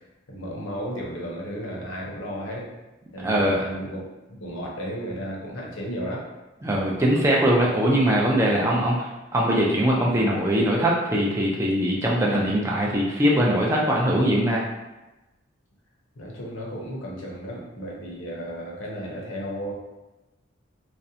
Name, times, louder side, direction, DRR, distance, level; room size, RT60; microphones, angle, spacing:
voice 1, 0.3-2.6 3.1-6.3 16.2-19.7, equal, 85° left, -3 dB, 0.6 m, -34 dB
voice 2, 3.2-3.6 6.6-9.1 9.3-14.6, equal, 15° right, -4 dB, 0.3 m, -21 dB
2.5 x 2.1 x 2.7 m, 1.1 s
head